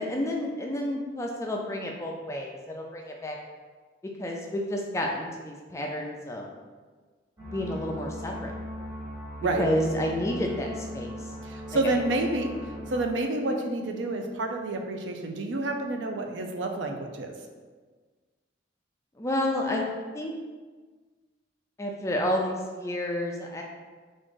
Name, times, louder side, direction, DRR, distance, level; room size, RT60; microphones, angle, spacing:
voice 1, 0.0-3.4 4.2-6.5 7.4-8.5 9.6-11.1 11.7-11.8 19.2-19.8 20.1-20.3 21.8-23.6, left 1 dB, 15° left, 0 dB, 0.3 m, -30 dB
sound 1, 7.4-13.0, equal, 20° right, 1.0 m, -39 dB
voice 2, 11.4-12.5 12.9-17.3, right 2 dB, 90° right, 4 dB, 0.4 m, -29 dB
3.7 x 2.5 x 3.7 m, 1.4 s
head